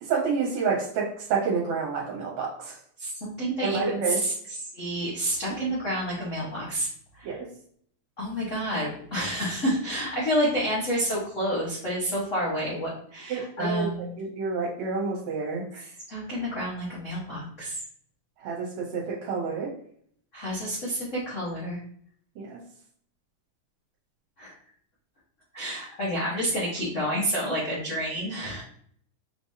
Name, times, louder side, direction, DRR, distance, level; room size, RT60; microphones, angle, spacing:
voice 1, 0.0-2.8 3.6-4.2 7.3-7.5 13.3-13.9 14.2-15.8 18.4-19.7 22.4-22.6, right 5 dB, 70° right, -3 dB, 2.1 m, -29 dB
voice 2, 3.0-6.9 7.1-7.4 8.2-14.1 15.8-17.8 20.3-21.8 24.4-24.5 25.5-28.6, equal, 90° left, -7 dB, 0.6 m, -29 dB
5.9 x 3.3 x 2.7 m, 0.62 s
omnidirectional pair, 3.4 m